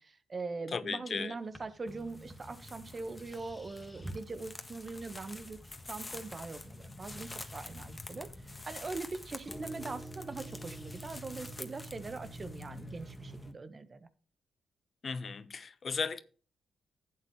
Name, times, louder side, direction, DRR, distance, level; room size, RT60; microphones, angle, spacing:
voice 1, 0.0-5.6 5.9-14.1, right 3 dB, 45° right, 1.4 m, -42 dB
voice 2, 0.7-1.3 15.0-16.2, left 5 dB, 50° left, 0.9 m, -36 dB
sound 1, 1.5-4.6 4.9-5.4 5.6-5.7 6.1-6.9 7.2-7.9 9.5-13.4, right 2 dB, 5° right, 3.0 m, -48 dB
sound 2, 1.9-13.5, left 2 dB, 25° left, 1.5 m, -47 dB
11.5 x 8.1 x 3.2 m
supercardioid pair, 50°, 0 cm